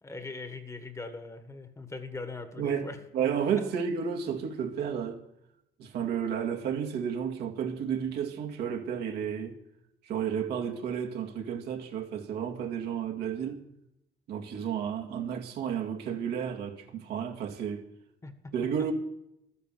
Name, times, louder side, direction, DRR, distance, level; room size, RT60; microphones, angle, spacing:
voice 1, 0.0-3.0 3.6-3.7 18.2-18.9, left 3 dB, 15° left, 1.6 m, -41 dB
voice 2, 2.6-2.9 3.1-5.2 5.8-9.6 10.1-13.6 14.3-17.8 18.5-18.9, right 8 dB, 75° right, 2.2 m, -32 dB
12.5 x 10.0 x 7.7 m
cardioid pair, 110°, 17 cm